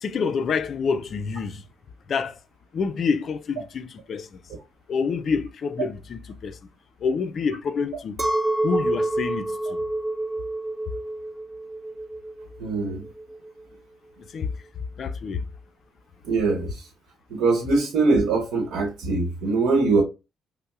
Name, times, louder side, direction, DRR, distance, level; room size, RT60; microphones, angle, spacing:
voice 1, 0.0-1.6 2.1-2.4 2.7-4.4 4.9-6.6 7.0-8.2 8.6-9.8 14.3-14.5 15.0-15.4, left 5 dB, 55° left, 0.4 m, -27 dB
Chink clink, 8.2-13.6, right 1 dB, 20° right, 0.4 m, -28 dB
voice 2, 12.6-13.0 16.2-16.9 17.3-20.0, right 3 dB, 85° right, 0.9 m, -22 dB
5.3 x 2.0 x 2.3 m
cardioid pair, 90°, 0 cm